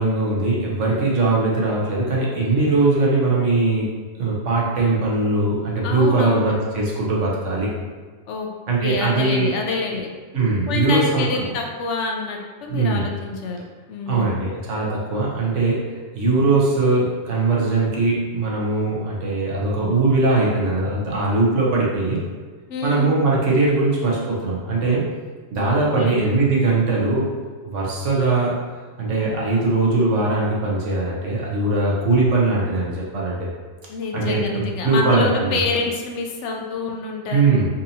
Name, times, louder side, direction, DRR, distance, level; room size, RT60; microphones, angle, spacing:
voice 1, 0.0-7.7 8.7-9.5 10.3-11.5 12.7-13.1 14.1-22.2 22.8-25.0 25.5-27.3 27.6-28.6 29.0-33.5 34.1-35.6 37.3-37.7, right 3 dB, 75° right, -4 dB, 1.2 m, -20 dB
voice 2, 5.8-6.5 8.3-8.5 8.8-10.1 10.7-14.4 22.7-23.2 25.6-25.7 26.0-26.2 33.9-37.7, left 3 dB, 75° left, 1 dB, 0.9 m, -27 dB
4.2 x 2.7 x 2.7 m, 1.4 s
omnidirectional pair, 1.3 m